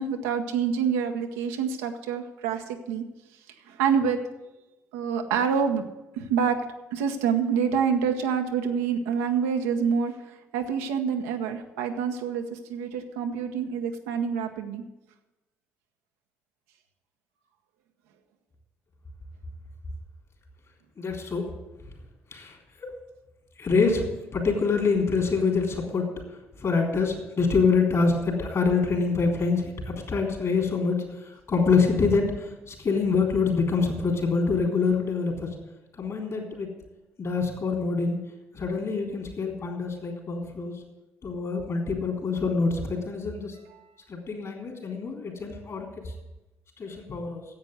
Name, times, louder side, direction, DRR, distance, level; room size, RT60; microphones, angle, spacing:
voice 1, 0.0-3.0 3.6-4.2 4.9-5.9 6.1-14.8 43.7-43.9, right 7 dB, 75° right, 4 dB, 1.0 m, -27 dB
voice 2, 21.0-21.4 22.3-22.5 22.8-22.9 23.6-26.1 26.6-31.0 31.5-35.5 36.0-36.7 37.2-38.2 38.5-40.8 41.2-43.5 44.1-45.9 46.8-47.4, left 4 dB, 45° left, 1 dB, 3.6 m, -25 dB
10.5 x 8.0 x 7.9 m, 1.0 s
hypercardioid pair, 50°, 7 cm